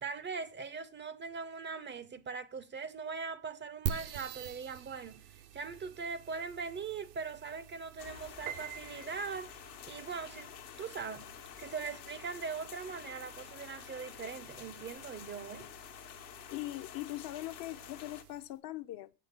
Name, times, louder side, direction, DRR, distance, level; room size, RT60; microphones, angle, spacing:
voice 1, 0.0-5.2 5.5-9.6 9.9-10.5 10.8-11.3 11.6-15.7, right 5 dB, 25° right, 0.5 m, -41 dB
sound 1, 3.9-18.6, right 10 dB, 85° right, 0.9 m, -48 dB
sound 2, 8.0-18.2, left 13 dB, 85° left, 1.1 m, -50 dB
Piano, 8.5-9.8, right 10 dB, 65° right, 0.7 m, -45 dB
voice 2, 16.5-19.1, left 16 dB, 45° left, 0.5 m, -41 dB
8.2 x 6.5 x 5.7 m
hypercardioid pair, 85°, 49 cm